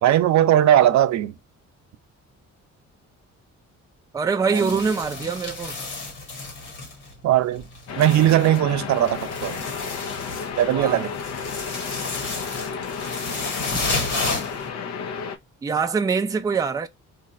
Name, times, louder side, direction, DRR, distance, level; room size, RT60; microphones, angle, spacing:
voice 1, 0.0-1.3 4.5-4.7 7.2-7.6 8.0-9.6 10.6-11.1, right 12 dB, 65° right, 0.6 m, -19 dB
voice 2, 4.1-5.8 10.6-11.0 15.6-16.9, right 5 dB, 10° right, 0.4 m, -24 dB
sound 1, 4.5-7.3 7.5-14.7, left 3 dB, 90° left, 1.7 m, -32 dB
sound 2, 7.9-15.4, left 6 dB, 60° left, 0.7 m, -32 dB
2.6 x 2.5 x 4.2 m
cardioid pair, 90°, 30 cm